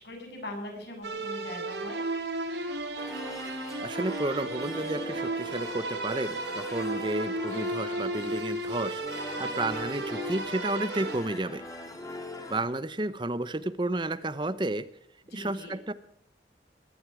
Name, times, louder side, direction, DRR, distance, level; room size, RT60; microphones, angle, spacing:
voice 1, 0.0-2.0 15.3-15.7, left 1 dB, 70° left, 2 dB, 7.9 m, -40 dB
sound 1, 1.0-11.2, right 2 dB, 85° right, 3.9 m, -34 dB
sound 2, 3.0-12.6, left 2 dB, 20° left, 3.2 m, -41 dB
voice 2, 3.8-11.6 12.5-14.9 15.3-15.9, right 2 dB, 25° right, 13 dB, 0.8 m, -32 dB
22.5 x 12.5 x 4.9 m, 0.69 s
head